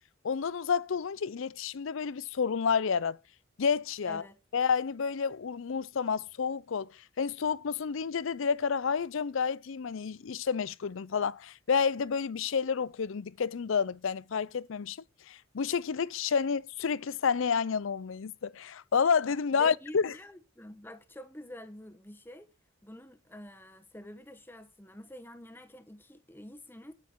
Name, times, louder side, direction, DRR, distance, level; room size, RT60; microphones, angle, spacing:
voice 1, 0.2-3.2 3.6-4.2 4.5-15.0 15.3-20.1, left 6 dB, 70° left, 0.5 m, -30 dB
voice 2, 4.1-4.4 19.6-22.5 22.8-26.9, equal, 10° left, 1.3 m, -47 dB
9.5 x 9.5 x 4.6 m
head